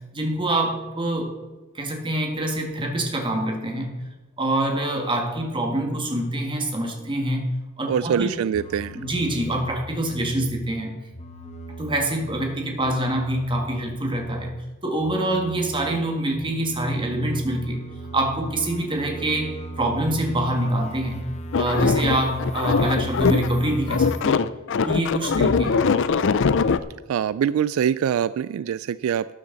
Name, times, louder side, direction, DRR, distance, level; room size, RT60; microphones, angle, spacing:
voice 1, 0.1-1.4 1.7-4.0 4.4-7.5 7.8-8.3 8.9-11.0 11.8-14.5 14.8-17.8 18.1-21.2 21.6-24.4 24.8-25.8, right 1 dB, 25° right, 2 dB, 1.8 m, -25 dB
voice 2, 7.9-9.0 27.1-29.3, right 8 dB, 75° right, 17 dB, 0.3 m, -24 dB
sound 1, 8.5-10.7 11.1-14.6 14.9-24.2, right 1 dB, 30° left, 1.2 m, -38 dB
sound 2, 21.5-23.6 23.9-26.8, left 5 dB, 60° left, 0.5 m, -21 dB
12.5 x 9.7 x 4.0 m, 1.1 s
head